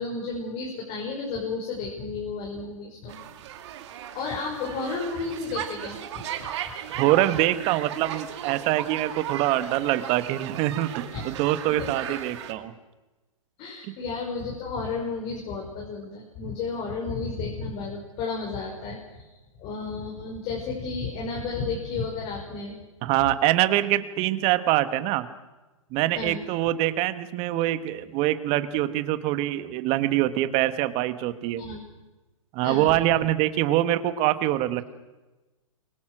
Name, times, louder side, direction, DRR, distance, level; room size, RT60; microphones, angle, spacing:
voice 1, 0.0-3.2 4.1-6.2 11.1-11.2 11.8-12.2 13.6-19.2 19.6-22.8 26.1-26.4 31.6-31.8 32.6-33.0, left 4 dB, 35° left, -1 dB, 6.2 m, -32 dB
sound 1, 3.1-12.5, right 10 dB, 55° right, 2.6 m, -37 dB
voice 2, 7.0-12.7 13.9-14.0 23.0-25.3 25.9-31.7 32.5-34.8, right 14 dB, 35° right, 11 dB, 1.8 m, -24 dB
28.5 x 24.0 x 6.3 m, 1.1 s
hypercardioid pair, 130°, 17 cm